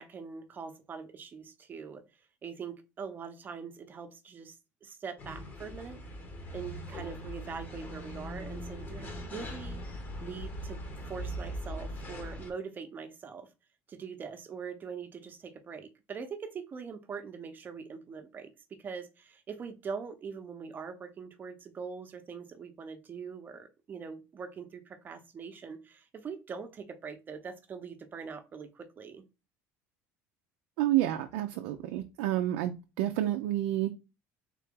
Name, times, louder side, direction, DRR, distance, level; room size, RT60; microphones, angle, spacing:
voice 1, 0.0-2.0 2.4-6.0 6.5-9.8 10.2-10.8 11.1-13.5 13.9-18.5 18.8-29.2, right 6 dB, 30° right, 0.7 m, -42 dB
sound 1, 5.2-12.5, equal, 30° left, 1.0 m, -40 dB
voice 2, 30.8-33.9, right 13 dB, 90° right, 0.4 m, -29 dB
3.7 x 2.9 x 3.5 m
cardioid pair, 120°, 6 cm